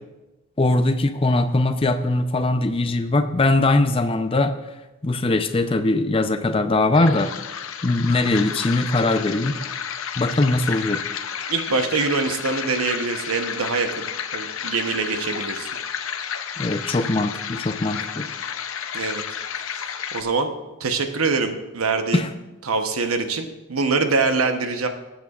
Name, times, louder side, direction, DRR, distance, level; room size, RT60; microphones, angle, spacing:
voice 1, 0.6-4.5 5.0-7.3 7.8-9.6 10.2-11.0 16.6-18.3 22.1-22.3, left 2 dB, 25° left, 8 dB, 0.5 m, -21 dB
sound 1, 6.9-20.2, left 7 dB, 75° left, 0.6 m, -31 dB
voice 2, 11.5-14.0 14.3-15.7 18.9-19.2 19.7-19.8 20.1-20.5 20.8-22.2 22.7-24.9, right 4 dB, 90° right, 6 dB, 0.9 m, -24 dB
19.0 x 8.1 x 2.4 m, 1.1 s
head